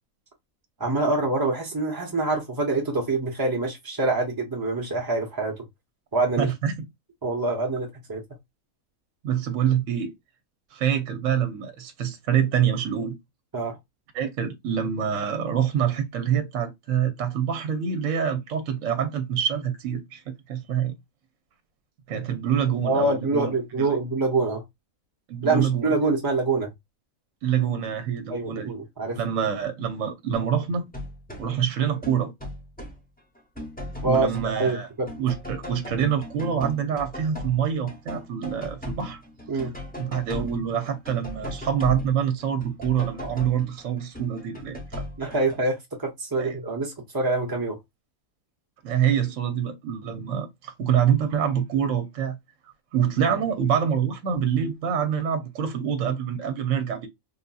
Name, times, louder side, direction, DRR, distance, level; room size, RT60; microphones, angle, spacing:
voice 1, 0.8-5.5 6.1-6.5 7.2-8.2 13.5-13.8 22.8-24.6 25.4-26.7 28.3-29.2 34.0-34.3 34.6-35.1 39.5-39.7 45.2-47.8, right 2 dB, 25° right, 0.5 m, -25 dB
voice 2, 6.4-6.8 9.2-10.1 10.7-13.2 14.1-20.9 22.1-23.5 23.8-23.9 25.3-25.9 27.4-28.7 29.2-30.8 31.4-32.3 34.0-34.9 35.2-39.2 40.0-45.0 46.4-46.6 48.8-52.4 52.9-57.1, right 8 dB, 70° right, 1.0 m, -26 dB
sound 1, 30.9-31.5 31.8-33.0 33.4-34.8 35.1-45.6, left 1 dB, 10° left, 0.7 m, -38 dB
3.6 x 2.6 x 2.2 m
omnidirectional pair, 1.5 m